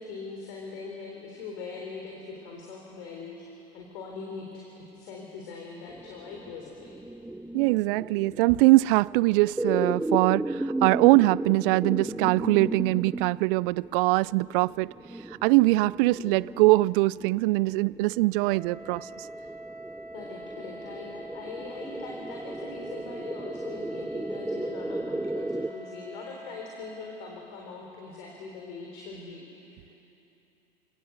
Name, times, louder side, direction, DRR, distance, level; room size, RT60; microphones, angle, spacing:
voice 1, 0.0-7.0 20.1-30.0, left 4 dB, 65° left, 3.7 m, -41 dB
sound 1, 5.9-25.7, right 2 dB, 5° right, 0.6 m, -35 dB
voice 2, 7.5-14.9 15.4-19.1, right 21 dB, 60° right, 0.5 m, -22 dB
Wind instrument woodwind instrument, 18.3-27.2, right 1 dB, 40° left, 6.6 m, -45 dB
28.0 x 18.0 x 7.9 m
hypercardioid pair, 75°, 30 cm